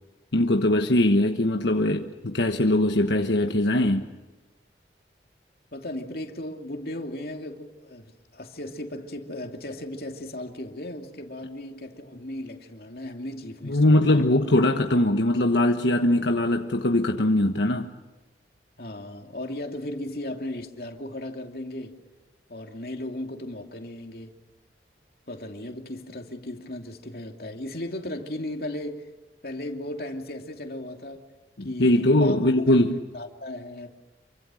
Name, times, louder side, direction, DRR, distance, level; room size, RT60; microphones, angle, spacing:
voice 1, 0.3-4.1 13.6-17.9 31.6-33.0, left 1 dB, 85° left, 1.3 m, -21 dB
voice 2, 5.7-14.2 18.8-22.0 22.5-24.3 25.3-29.1 29.4-31.2 31.6-32.5 32.9-33.9, left 1 dB, 60° left, 2.8 m, -36 dB
28.5 x 24.5 x 6.4 m
head